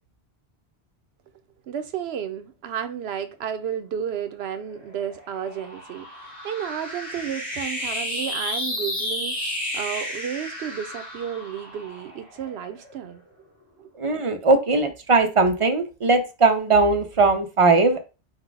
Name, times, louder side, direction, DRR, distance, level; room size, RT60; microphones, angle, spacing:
voice 1, 1.7-13.2 13.8-13.9, right 8 dB, 75° right, 0.9 m, -32 dB
sound 1, 4.5-13.2, left 1 dB, 40° left, 1.7 m, -32 dB
voice 2, 13.9-18.0, right 3 dB, 40° right, 0.5 m, -19 dB
4.1 x 2.2 x 4.6 m
omnidirectional pair, 1.1 m